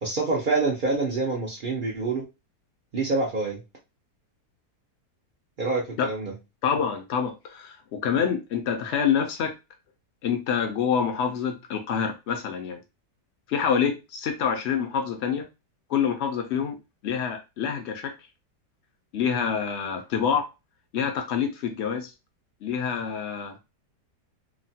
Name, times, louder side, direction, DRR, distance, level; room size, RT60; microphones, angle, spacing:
voice 1, 0.0-2.3 2.9-3.6 5.6-6.3, right 3 dB, 70° right, 0.4 m, -26 dB
voice 2, 6.6-9.5 10.2-12.8 13.5-15.5 15.9-16.8 17.0-18.1 19.1-20.5 20.9-22.1 22.6-23.6, left 7 dB, 70° left, 0.6 m, -26 dB
3.0 x 2.1 x 2.7 m
omnidirectional pair, 1.8 m